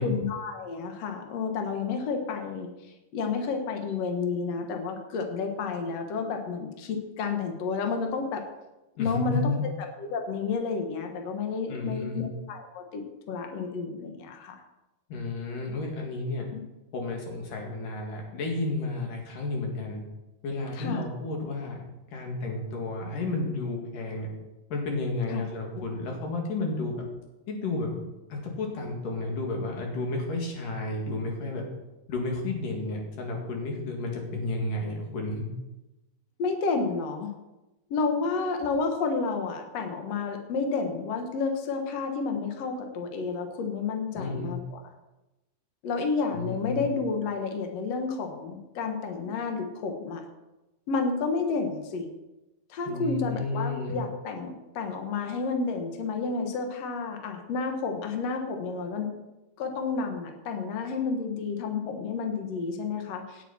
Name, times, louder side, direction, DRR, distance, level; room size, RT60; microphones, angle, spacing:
voice 1, 0.0-2.7 3.1-8.4 9.0-14.6 16.5-16.6 20.7-21.1 25.3-25.4 36.4-37.3 37.9-44.8 45.8-50.2 50.9-52.1 52.7-59.1 59.6-63.4, left 4 dB, 85° left, 4 dB, 1.4 m, -30 dB
voice 2, 9.0-9.7 11.7-12.3 15.1-16.4 16.9-20.0 20.4-21.8 22.1-24.3 24.7-27.0 27.5-28.0 28.3-31.6 32.1-35.5 44.1-44.5 46.3-46.9 52.9-53.9, left 2 dB, 50° left, 1 dB, 3.4 m, -32 dB
17.5 x 9.2 x 4.3 m, 1.0 s
omnidirectional pair, 5.3 m